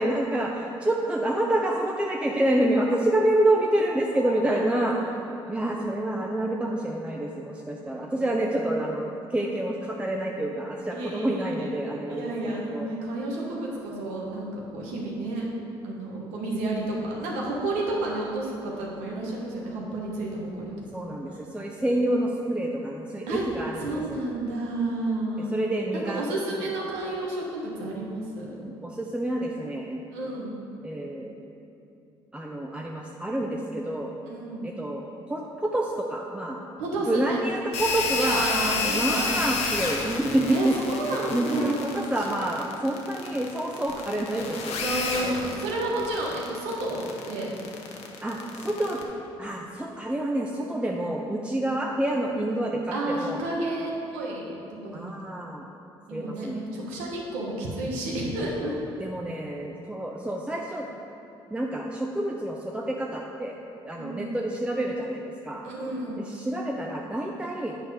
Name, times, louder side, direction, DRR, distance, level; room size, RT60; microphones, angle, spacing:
voice 1, 0.0-5.0 5.5-12.9 20.9-24.2 25.5-26.2 28.8-30.0 30.8-31.4 32.3-34.1 34.6-35.0 35.3-36.6 37.1-38.5 38.9-40.7 41.3-45.3 48.2-49.0 49.4-53.4 54.9-55.6 56.1-56.6 58.6-58.7 59.0-60.9 61.5-63.6 63.8-65.6 66.3-67.8, right 1 dB, 10° right, -1 dB, 0.6 m, -28 dB
voice 2, 4.1-5.7 8.0-8.2 10.9-11.8 12.1-15.5 15.8-20.7 23.3-23.4 23.8-25.6 25.9-28.6 30.1-30.7 34.2-34.8 36.7-37.6 38.2-39.5 40.5-42.3 44.8-47.5 52.5-55.4 56.1-58.9 64.0-64.4 65.6-66.4, right 2 dB, 90° right, -3 dB, 1.3 m, -31 dB
sound 1, 37.7-49.0, left 4 dB, 70° left, 0.9 m, -30 dB
7.9 x 4.6 x 5.0 m, 2.8 s
supercardioid pair, 70°, 11 cm